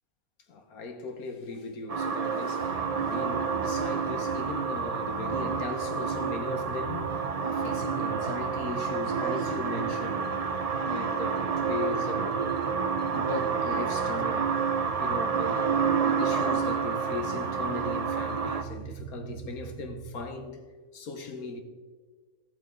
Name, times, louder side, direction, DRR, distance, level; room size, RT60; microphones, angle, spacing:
voice 1, 0.5-10.3 10.8-12.4 13.1-14.5 15.0-20.6 20.9-21.6, left 3 dB, 90° left, 1.7 m, -38 dB
sound 1, 1.9-18.6, right 6 dB, 40° right, 0.5 m, -29 dB
sound 2, 2.6-20.3, right 7 dB, 85° right, 1.1 m, -42 dB
14.5 x 7.3 x 3.8 m
omnidirectional pair, 1.5 m